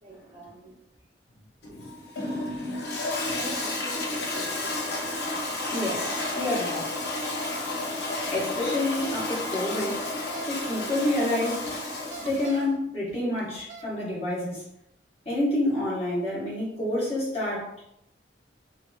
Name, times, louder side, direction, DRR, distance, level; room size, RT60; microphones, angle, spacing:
voice 1, 0.0-0.7 3.3-4.8, right 2 dB, 30° right, -7 dB, 0.9 m, -44 dB
Toilet flush, 1.6-12.7, left 2 dB, 60° left, 0.7 m, -31 dB
voice 2, 5.7-6.9 8.3-10.0 10.5-11.8 12.2-14.6 15.2-17.8, left 1 dB, 35° left, -7 dB, 1.1 m, -28 dB
sound 1, 10.0-10.5 12.0-12.8 13.4-13.9, right 4 dB, 90° right, 0.3 m, -43 dB
2.8 x 2.8 x 2.2 m, 0.76 s
head